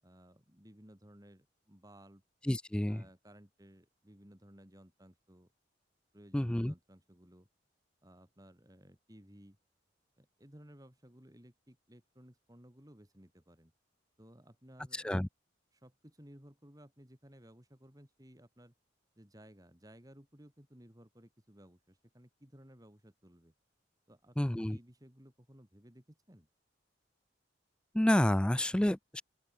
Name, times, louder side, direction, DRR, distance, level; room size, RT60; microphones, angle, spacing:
voice 1, 0.0-2.2 2.9-5.5 6.1-7.5 8.0-9.6 10.2-13.7 14.2-15.1 15.7-18.7 19.2-23.5 24.1-26.5, equal, 20° right, 3.8 m, -58 dB
voice 2, 2.4-3.0 6.3-6.7 14.9-15.3 24.4-24.8 27.9-29.2, left 1 dB, 5° left, 0.3 m, -29 dB
open air
head